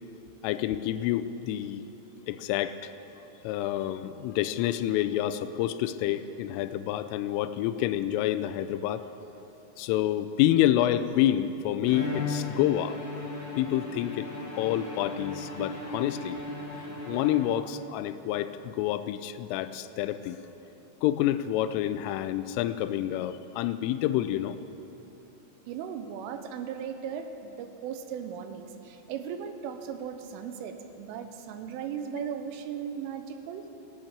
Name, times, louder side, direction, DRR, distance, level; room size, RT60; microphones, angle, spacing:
voice 1, 0.4-1.9 2.3-2.9 3.4-9.0 9.8-13.0 13.6-14.3 14.6-16.4 17.1-20.4 21.0-24.6, left 12 dB, 85° left, 12 dB, 3.1 m, -28 dB
Bowed string instrument, 11.8-17.8, left 2 dB, 5° left, 3.0 m, -36 dB
voice 2, 25.7-33.7, right 7 dB, 85° right, 7 dB, 3.3 m, -37 dB
16.5 x 8.8 x 8.9 m, 3.0 s
omnidirectional pair, 5.8 m